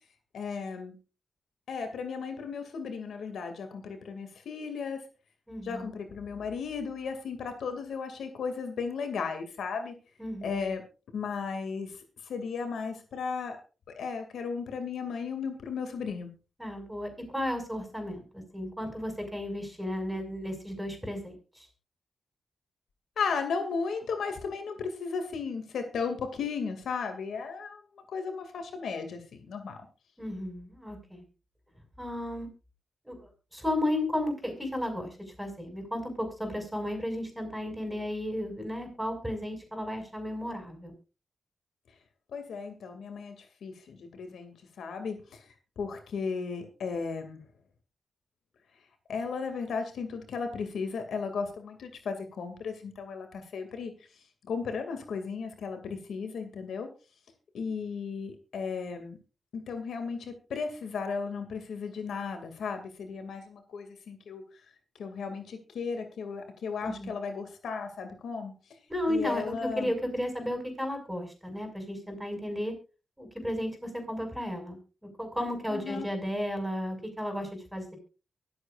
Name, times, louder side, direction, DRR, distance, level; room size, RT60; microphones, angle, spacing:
voice 1, 0.3-0.9 1.7-5.1 5.6-9.9 10.4-10.8 11.1-13.6 14.0-16.3 23.2-29.8 42.3-47.4 49.1-53.9 54.5-56.9 57.5-59.2 59.5-64.4 65.0-68.5 69.1-69.9 75.7-76.1, left 5 dB, 85° left, 6 dB, 2.4 m, -35 dB
voice 2, 5.5-5.9 10.2-10.7 16.6-21.3 30.2-31.2 32.0-32.5 33.0-33.2 33.5-35.1 35.4-40.9 66.8-67.1 68.9-72.7 73.2-74.8 75.2-78.0, left 1 dB, 5° right, 4 dB, 6.1 m, -34 dB
24.0 x 8.1 x 2.5 m, 0.31 s
cardioid pair, 90°, 0 cm